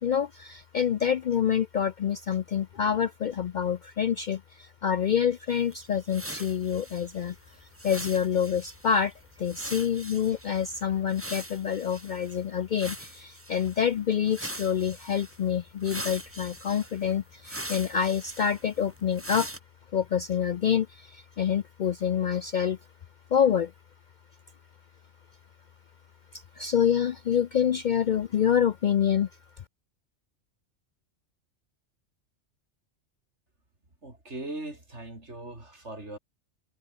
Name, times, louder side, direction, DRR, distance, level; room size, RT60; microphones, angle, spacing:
voice 1, 0.0-7.4 7.8-9.1 9.4-19.5 19.9-22.8 23.3-23.7 26.3-29.3, left 8 dB, 60° left, 0.5 m, -27 dB
sound 1, 5.5-12.4 12.8-13.9 14.3-15.4 15.8-19.6, right 1 dB, 10° right, 2.7 m, -42 dB
voice 2, 34.0-36.2, right 2 dB, 70° right, 5.9 m, -39 dB
omnidirectional pair, 1.2 m